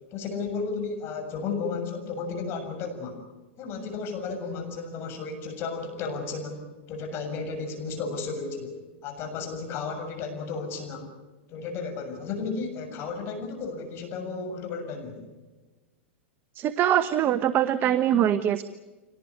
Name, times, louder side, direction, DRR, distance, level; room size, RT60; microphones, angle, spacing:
voice 1, 0.1-3.2 3.6-8.7 9.0-11.1 11.5-15.3, left 4 dB, 40° left, 6 dB, 7.1 m, -33 dB
voice 2, 16.5-18.6, right 10 dB, 35° right, 12 dB, 1.0 m, -23 dB
26.0 x 18.5 x 9.7 m, 1.2 s
hypercardioid pair, 125°, 6 cm